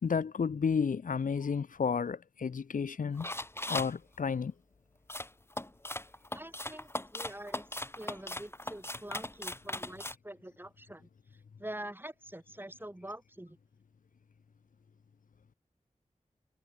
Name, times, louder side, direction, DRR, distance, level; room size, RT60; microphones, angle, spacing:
voice 1, 0.0-3.3 3.7-4.5, left 6 dB, 85° left, 1.3 m, -31 dB
sound 1, 3.2-3.9 5.1-10.1, left 1 dB, 20° left, 1.6 m, -38 dB
voice 2, 6.3-7.6 8.0-11.1 11.6-13.6, right 1 dB, 15° right, 4.8 m, -45 dB
cardioid pair, 45°, 13 cm